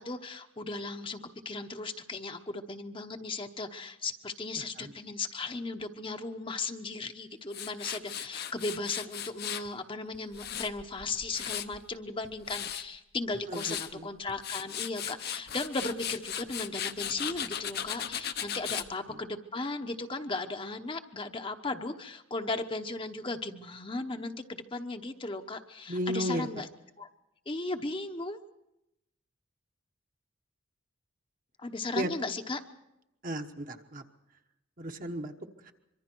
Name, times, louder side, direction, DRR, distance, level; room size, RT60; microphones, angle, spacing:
voice 1, 0.0-26.7 27.0-27.1 27.5-28.4 31.6-32.6, left 3 dB, 25° left, 6 dB, 1.0 m, -36 dB
voice 2, 4.6-4.9 13.5-14.1 19.1-19.2 25.9-26.5 31.9-32.1 33.2-34.0 34.8-35.3 35.6-35.7, equal, 40° right, 5 dB, 1.3 m, -34 dB
Tools, 7.5-9.7 10.1-11.8 12.2-12.8 13.3-13.9 14.3-18.9, left 9 dB, 50° left, 0.9 m, -37 dB
25.0 x 23.5 x 4.6 m, 0.89 s
head